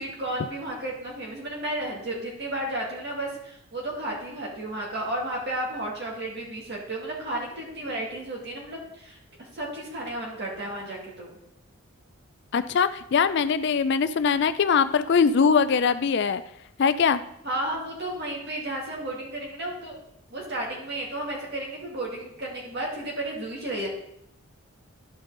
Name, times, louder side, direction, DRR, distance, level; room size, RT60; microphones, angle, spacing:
voice 1, 0.0-9.2 9.5-11.3 17.4-20.0 20.3-23.9, right 1 dB, 50° right, -2 dB, 2.5 m, -33 dB
voice 2, 12.5-16.4 16.8-17.2, left 6 dB, 50° left, 13 dB, 0.4 m, -22 dB
12.0 x 5.3 x 3.9 m, 0.77 s
head